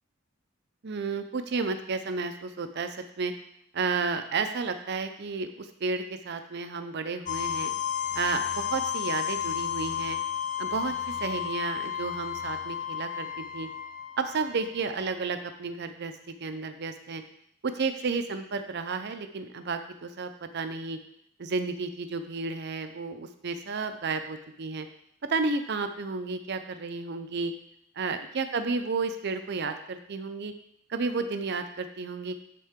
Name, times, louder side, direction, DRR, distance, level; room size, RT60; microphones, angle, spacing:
voice 1, 0.8-3.3 3.7-7.7 8.1-10.2 10.6-13.7 14.2-17.2 17.6-21.0 21.4-24.9 25.3-27.5 28.0-30.5 30.9-32.4, right 4 dB, 55° right, 8 dB, 0.6 m, -32 dB
sound 1, 7.3-15.0, left 9 dB, 40° left, 0.5 m, -32 dB
11.0 x 3.8 x 3.6 m, 0.73 s
head